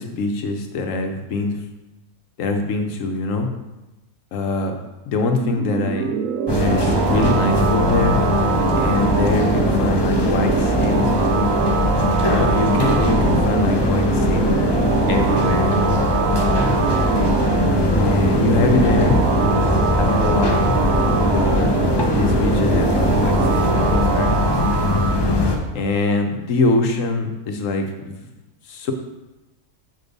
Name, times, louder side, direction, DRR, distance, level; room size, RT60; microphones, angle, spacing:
voice 1, 0.0-1.6 2.4-3.5 4.3-4.7 5.1-6.1 6.6-8.2 8.8-11.1 12.2-14.5 15.1-16.0 18.0-19.2 19.6-20.7 21.2-21.7 22.0-24.6 25.7-28.3 28.7-28.9, left 3 dB, 70° left, 4 dB, 1.1 m, -24 dB
sound 1, 5.3-25.2, right 7 dB, 75° right, 1.0 m, -23 dB
sound 2, 6.5-25.6, left 2 dB, 35° left, 0.4 m, -20 dB
6.2 x 5.2 x 4.0 m, 1.0 s
omnidirectional pair, 1.5 m